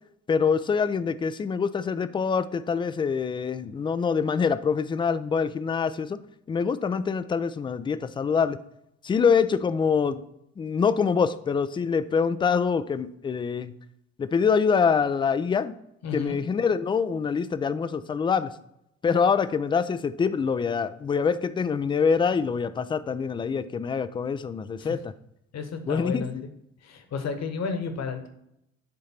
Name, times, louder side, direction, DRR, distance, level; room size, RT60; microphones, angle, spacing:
voice 1, 0.3-6.2 6.5-8.6 9.0-10.2 10.6-13.7 14.2-15.7 16.1-18.5 19.0-25.0 25.9-26.4, left 6 dB, 15° left, 13 dB, 0.3 m, -25 dB
voice 2, 16.0-16.4 24.8-24.9 25.5-26.3 26.8-28.3, left 5 dB, 40° left, 7 dB, 1.2 m, -32 dB
11.0 x 3.8 x 4.3 m, 0.79 s
figure-of-eight pair, 50°, 40 cm